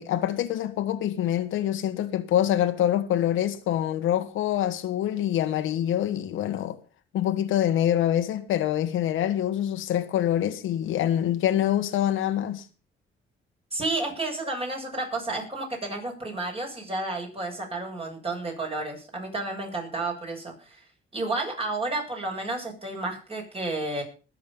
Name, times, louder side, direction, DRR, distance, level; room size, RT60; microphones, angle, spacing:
voice 1, 0.0-6.8 7.1-12.6, left 11 dB, 85° left, 1.5 m, -25 dB
voice 2, 13.7-20.8 21.1-24.0, right 2 dB, 30° right, 7.2 m, -31 dB
21.0 x 7.7 x 5.6 m
cardioid pair, 90°, 20 cm